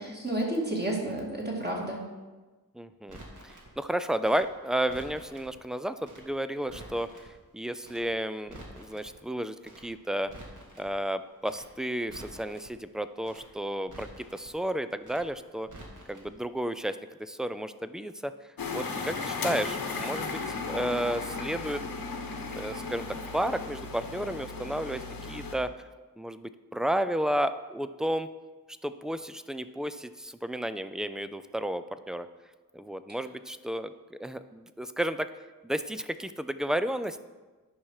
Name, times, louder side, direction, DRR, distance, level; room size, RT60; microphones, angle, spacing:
voice 1, 0.0-2.1, right 1 dB, 25° right, -2 dB, 2.3 m, -31 dB
voice 2, 2.8-3.2 3.4-7.1 7.5-9.5 9.8-10.3 10.8-15.7 16.1-18.3 18.7-21.8 22.5-23.1 23.3-25.0 25.3-25.7 26.2-28.3 28.8-32.3 32.7-35.3 35.6-37.2, right 1 dB, ahead, 12 dB, 0.4 m, -32 dB
Crackle, 3.1-3.7 4.2-5.5 6.0-6.3 6.5-7.3 7.8-8.1 8.3-9.1 9.6-9.9 10.2-10.9 11.4-11.7 12.0-12.7 13.2-13.5 13.8-14.5 15.0-15.3 15.6-16.3 16.6-16.7, right 1 dB, 55° right, 2.1 m, -48 dB
sound 1, 18.6-25.5, left 4 dB, 70° left, 1.2 m, -35 dB
10.0 x 5.7 x 4.8 m, 1.3 s
wide cardioid pair, 70°, 36 cm